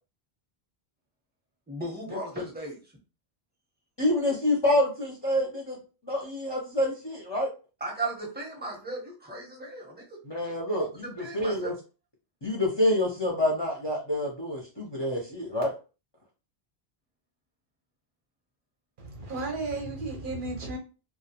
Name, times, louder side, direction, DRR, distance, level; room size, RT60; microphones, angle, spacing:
voice 1, 1.7-2.8 7.8-10.2 10.8-11.8, right 2 dB, 10° right, -2 dB, 0.6 m, -36 dB
voice 2, 4.0-5.8 6.0-7.5 10.2-11.7 12.4-15.7, left 1 dB, 35° left, -2 dB, 0.5 m, -27 dB
voice 3, 19.0-20.8, right 2 dB, 60° right, 1 dB, 0.7 m, -34 dB
2.2 x 2.1 x 2.7 m, 0.33 s
omnidirectional pair, 1.1 m